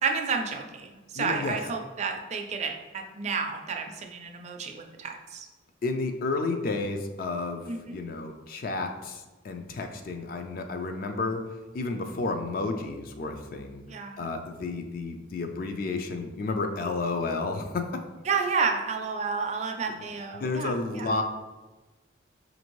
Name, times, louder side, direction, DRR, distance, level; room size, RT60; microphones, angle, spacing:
voice 1, 0.0-5.5 7.7-8.0 13.9-14.2 18.3-21.1, right 5 dB, 35° right, 4 dB, 0.4 m, -31 dB
voice 2, 1.1-1.6 5.8-13.8 14.2-18.1 20.4-21.2, left 3 dB, 45° left, 5 dB, 0.3 m, -31 dB
5.0 x 2.6 x 3.0 m, 1.2 s
head